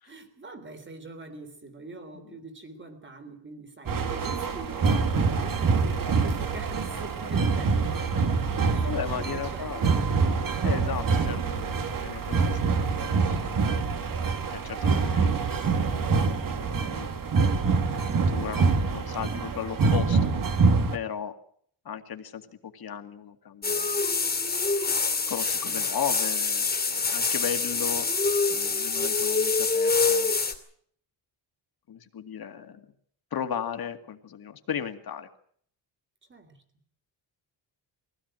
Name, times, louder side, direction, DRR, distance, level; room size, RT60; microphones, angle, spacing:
voice 1, 0.0-10.0 25.7-26.0 36.3-36.6, right 3 dB, 25° right, 9 dB, 3.6 m, -44 dB
sound 1, 3.9-21.0, right 4 dB, 50° right, 2.0 m, -25 dB
voice 2, 8.8-9.8 10.6-14.2 14.5-15.4 15.9-17.1 18.3-20.3 20.9-21.3 21.8-24.0 25.3-28.1 28.5-30.3 31.9-32.9 33.3-35.3, left 8 dB, 55° left, 7 dB, 2.2 m, -36 dB
sound 2, 23.6-30.5, left 4 dB, 20° left, 2.5 m, -26 dB
22.5 x 16.5 x 8.9 m, 0.64 s
wide cardioid pair, 150°, 44 cm